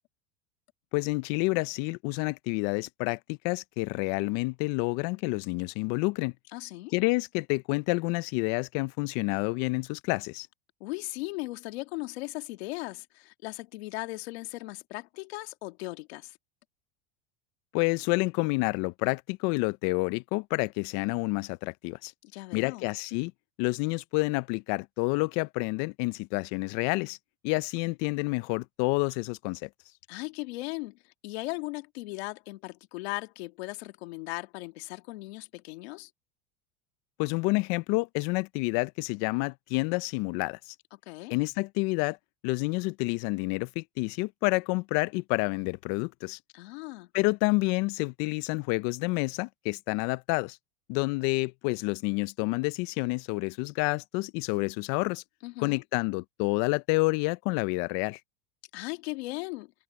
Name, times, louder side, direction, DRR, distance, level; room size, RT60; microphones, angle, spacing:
voice 1, 0.9-6.3 6.9-10.5 17.7-22.1 22.5-23.3 23.6-27.2 27.4-29.7 37.2-40.6 41.3-42.2 42.4-46.4 47.1-50.6 50.9-55.2 55.6-58.2, left 26 dB, 55° left, 0.5 m, -29 dB
voice 2, 6.5-6.9 10.8-16.4 22.2-22.8 30.1-36.1 40.9-41.3 46.5-47.1 55.4-55.8 58.7-59.7, left 23 dB, 75° left, 1.7 m, -38 dB
supercardioid pair, 130°, 32 cm